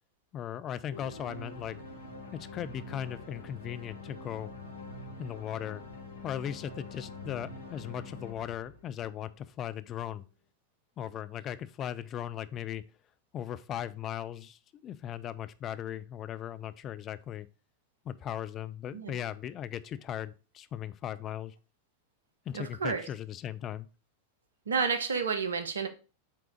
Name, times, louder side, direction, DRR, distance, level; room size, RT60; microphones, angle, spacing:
voice 1, 0.3-1.8 2.3-4.5 5.2-5.9 6.2-10.2 11.0-12.8 13.3-17.5 18.1-21.5 22.5-23.9, left 10 dB, 30° left, 0.4 m, -38 dB
sound 1, 0.9-9.4, left 2 dB, 70° left, 1.3 m, -45 dB
voice 2, 22.5-23.0 24.7-25.9, right 5 dB, 70° right, 0.8 m, -30 dB
5.7 x 3.6 x 5.0 m
figure-of-eight pair, 90°, 0 cm